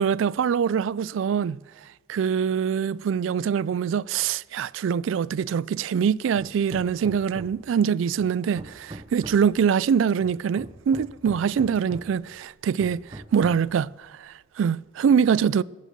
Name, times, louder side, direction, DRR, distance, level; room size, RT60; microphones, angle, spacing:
voice 1, 0.0-1.6 2.1-15.6, right 7 dB, 85° right, 0.3 m, -24 dB
Hammer, 6.4-7.8 8.2-9.6 10.2-12.2 12.8-13.7, right 1 dB, 25° right, 0.7 m, -42 dB
14.5 x 9.1 x 6.7 m
head